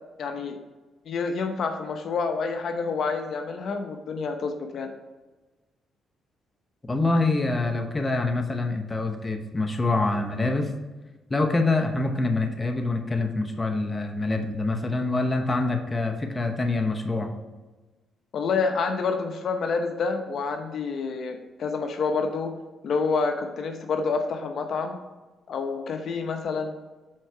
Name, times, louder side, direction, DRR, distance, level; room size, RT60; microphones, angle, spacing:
voice 1, 0.2-0.6 1.0-4.9 18.3-22.5 22.8-25.0 25.5-26.8, left 4 dB, 60° left, 5 dB, 0.9 m, -28 dB
voice 2, 6.8-10.7 11.3-17.3, left 2 dB, 20° left, 4 dB, 0.9 m, -25 dB
7.7 x 4.8 x 4.5 m, 1.2 s
cardioid pair, 90°, 0 cm